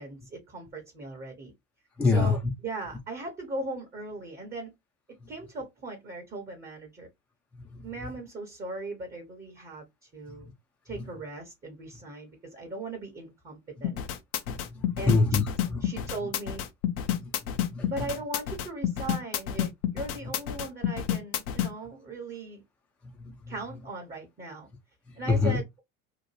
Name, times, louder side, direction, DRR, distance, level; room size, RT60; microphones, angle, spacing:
voice 1, 0.0-1.5 2.1-2.4 2.6-4.7 5.3-7.1 7.8-10.5 10.8-14.0 15.0-15.2 15.8-16.6 17.9-22.6 23.5-24.7 25.2-25.8, right 2 dB, 20° right, 0.8 m, -38 dB
voice 2, 2.0-2.5 5.2-5.3 7.5-8.2 10.3-10.5 10.9-11.2 14.5-16.1 17.1-18.1 20.2-20.3 23.0-23.8 25.1-25.6, left 3 dB, 5° left, 0.4 m, -28 dB
sound 1, 13.8-21.7, left 10 dB, 65° left, 0.6 m, -29 dB
2.8 x 2.1 x 3.0 m
hypercardioid pair, 75°, 47 cm